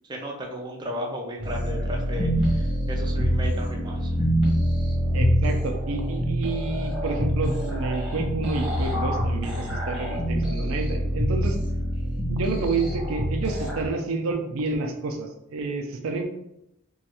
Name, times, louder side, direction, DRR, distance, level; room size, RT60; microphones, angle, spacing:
voice 1, 0.1-4.1, equal, 20° right, 0 dB, 0.4 m, -34 dB
sound 1, 1.4-13.9, equal, 5° right, 1.0 m, -25 dB
voice 2, 5.1-11.6 12.3-16.2, right 3 dB, 90° right, 4 dB, 0.4 m, -29 dB
3.1 x 2.3 x 2.9 m, 0.83 s
head